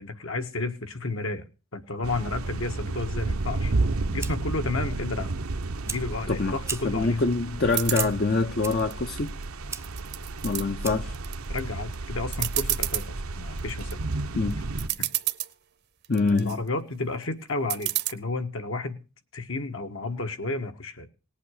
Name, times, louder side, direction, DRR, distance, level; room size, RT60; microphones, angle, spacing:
voice 1, 0.0-1.4 1.7-3.7 4.1-5.3 5.9-7.2 11.5-14.0 15.0-15.1 16.3-19.0 19.3-21.1, left 3 dB, 65° left, 1.6 m, -32 dB
sound 1, 2.0-14.9, right 2 dB, 75° right, 0.9 m, -32 dB
Fire, 3.8-11.2, right 5 dB, 10° right, 0.6 m, -41 dB
voice 2, 6.8-9.3 10.4-11.2 14.3-14.6 16.1-16.6, left 3 dB, 45° left, 0.7 m, -25 dB
sound 2, 7.7-8.1 8.6-9.4 9.8-10.6 11.1-11.6 11.9-12.0 12.3-13.1 13.6-13.9 14.5-14.6 14.8-15.5 16.0-16.6 17.7-18.1, right 16 dB, 45° right, 0.8 m, -29 dB
18.5 x 8.4 x 6.4 m
head